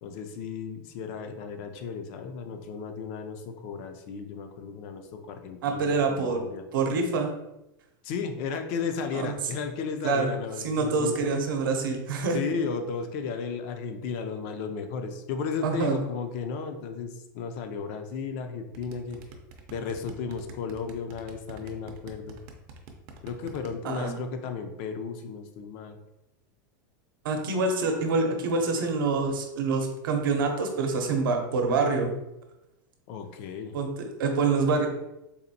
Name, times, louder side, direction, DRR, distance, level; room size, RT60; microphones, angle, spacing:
voice 1, 0.0-6.7 8.0-11.1 12.3-19.2 19.7-22.4 23.2-26.0 33.1-33.8, left 5 dB, 40° left, 7 dB, 0.4 m, -34 dB
voice 2, 5.6-6.4 6.7-7.3 9.1-9.3 10.0-10.3 10.6-12.4 15.6-16.0 23.8-24.1 27.2-32.1 33.7-34.9, right 4 dB, 85° right, 4 dB, 0.7 m, -26 dB
sound 1, 18.7-23.7, right 5 dB, 40° right, 0.5 m, -45 dB
4.0 x 2.5 x 2.7 m, 0.93 s
supercardioid pair, 160°, 11 cm